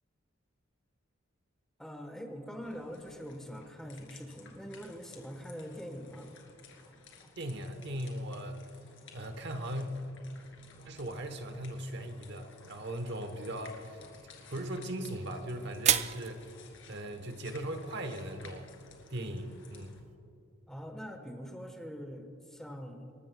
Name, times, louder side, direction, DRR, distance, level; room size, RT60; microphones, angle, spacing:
voice 1, 1.8-6.3 20.7-23.1, equal, 5° left, 4 dB, 1.2 m, -43 dB
sound 1, 2.6-20.0, left 4 dB, 70° left, 2.6 m, -56 dB
voice 2, 7.4-8.7 9.1-10.0 10.8-14.0 14.5-16.4 16.8-18.6 19.1-20.0, right 1 dB, 60° right, 7 dB, 1.1 m, -38 dB
sound 2, 14.2-20.2, right 10 dB, 35° right, 0.4 m, -37 dB
27.5 x 14.0 x 2.3 m, 2.7 s
head